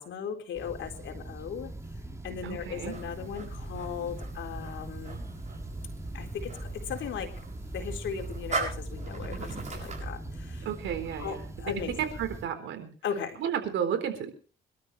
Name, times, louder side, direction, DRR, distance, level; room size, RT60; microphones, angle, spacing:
voice 1, 0.0-1.7 2.2-5.2 6.1-7.3 7.7-10.7 11.2-11.9 13.0-13.4, left 7 dB, 75° left, 4 dB, 4.0 m, -37 dB
sound 1, 0.5-12.4, right 1 dB, 15° right, 3.7 m, -40 dB
voice 2, 2.4-2.9 10.6-11.7 12.0-12.9 13.4-14.3, right 8 dB, 80° right, 7 dB, 4.1 m, -32 dB
sound 2, 2.7-10.1, right 4 dB, 35° right, 7.5 m, -40 dB
26.0 x 13.0 x 3.3 m, 0.39 s
cardioid pair, 90°, 20 cm